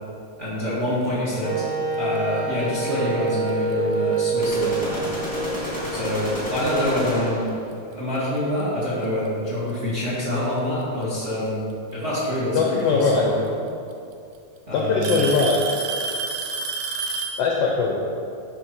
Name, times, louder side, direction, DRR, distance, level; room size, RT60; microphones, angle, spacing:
voice 1, 0.4-1.6 2.0-5.1 5.9-11.6 11.9-13.5 14.7-15.2, equal, 35° right, -7 dB, 1.3 m, -26 dB
Wind instrument woodwind instrument, 1.4-7.3, right 3 dB, 60° right, 2.6 m, -27 dB
Alarm / Tick-tock, 3.5-3.7 4.6-4.7 5.5-5.6 7.3-7.4 8.6-8.7 9.9-10.4 12.1-12.2 13.5-13.6 13.9-14.4 15.0-17.5, right 4 dB, 80° right, 1.6 m, -29 dB
sound 1, 4.4-7.6, left 1 dB, 15° left, 1.1 m, -30 dB
voice 2, 12.5-13.3 14.7-15.6 17.4-18.0, left 4 dB, 80° left, -1 dB, 1.4 m, -20 dB
12.0 x 5.0 x 4.5 m, 2.5 s
omnidirectional pair, 3.9 m